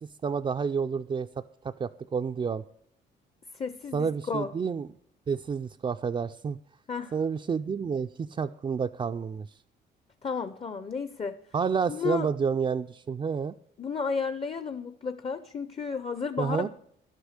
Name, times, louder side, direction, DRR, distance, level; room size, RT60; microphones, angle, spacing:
voice 1, 0.0-1.3 1.6-2.6 3.9-4.9 5.3-6.6 7.1-9.5 11.5-13.5 16.4-16.7, right 6 dB, 25° right, 5 dB, 0.3 m, -29 dB
voice 2, 3.5-4.5 6.9-7.1 10.2-11.4 11.9-12.3 13.8-16.7, left 5 dB, 30° left, 11 dB, 0.6 m, -32 dB
11.0 x 8.2 x 6.5 m, 0.68 s
cardioid pair, 90°, 20 cm